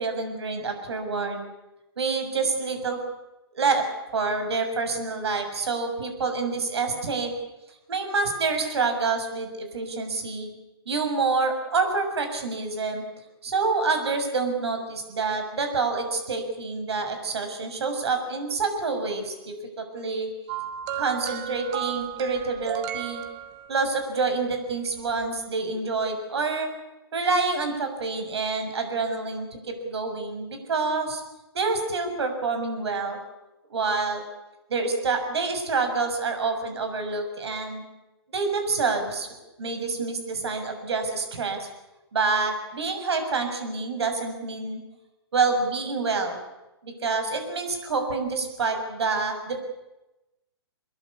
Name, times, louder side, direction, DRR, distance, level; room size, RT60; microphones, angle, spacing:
voice 1, 0.0-1.4 2.0-3.0 3.5-3.8 4.1-7.3 7.9-10.5 10.9-13.0 13.4-20.3 21.0-23.2 23.7-26.7 27.1-31.2 31.5-33.2 33.7-34.2 34.7-37.8 38.3-39.3 39.6-41.7 42.1-44.8 45.3-46.4 46.8-49.6, right 4 dB, 75° right, 6 dB, 6.9 m, -27 dB
sound 1, 20.5-24.0 25.1-25.2, right 10 dB, 35° right, 2.0 m, -34 dB
24.0 x 21.5 x 8.5 m, 0.99 s
hypercardioid pair, 130°, 14 cm